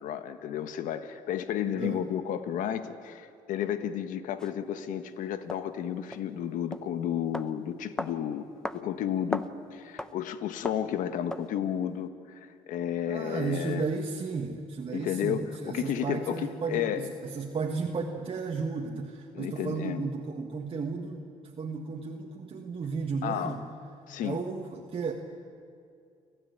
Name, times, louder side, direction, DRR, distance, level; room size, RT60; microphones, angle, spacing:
voice 1, 0.0-8.5 8.7-9.4 9.7-13.8 14.9-17.1 19.3-20.0 23.2-23.6 24.1-24.4, left 9 dB, 75° left, 10 dB, 1.3 m, -32 dB
sound 1, 4.4-4.5 5.5-5.6 6.1-6.3 6.7-6.9 7.3-7.5 8.0-8.2 8.6-8.8 9.1-9.5 10.0-10.2 10.6-10.9 11.3-11.5, left 1 dB, 5° left, 0.9 m, -35 dB
voice 2, 13.1-23.6 24.2-25.1, right 4 dB, 40° right, 1 dB, 1.8 m, -34 dB
29.5 x 13.0 x 9.4 m, 2.3 s
cardioid pair, 85°, 14 cm